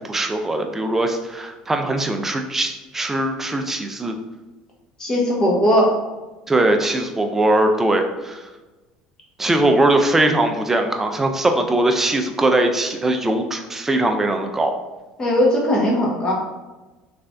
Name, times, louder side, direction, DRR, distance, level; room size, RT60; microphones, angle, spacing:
voice 1, 0.0-4.1 6.5-8.5 9.4-14.7, right 1 dB, 15° right, 5 dB, 0.4 m, -20 dB
voice 2, 5.0-5.9 15.2-16.3, equal, 25° left, -2 dB, 1.1 m, -18 dB
3.4 x 3.2 x 2.5 m, 1.1 s
supercardioid pair, 100°, 2 cm